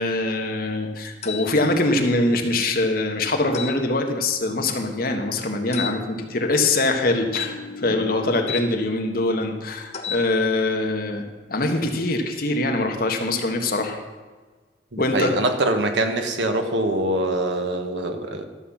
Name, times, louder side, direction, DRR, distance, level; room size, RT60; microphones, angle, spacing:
voice 1, 0.0-14.0 15.0-15.4, left 2 dB, 55° left, 4 dB, 1.3 m, -23 dB
sound 1, 1.2-1.5 3.5-3.8 5.7-6.0 7.3-8.7 9.9-10.3, left 7 dB, 40° left, 1.0 m, -32 dB
voice 2, 14.9-18.4, right 1 dB, 85° right, 6 dB, 1.3 m, -24 dB
12.5 x 5.7 x 7.2 m, 1.4 s
head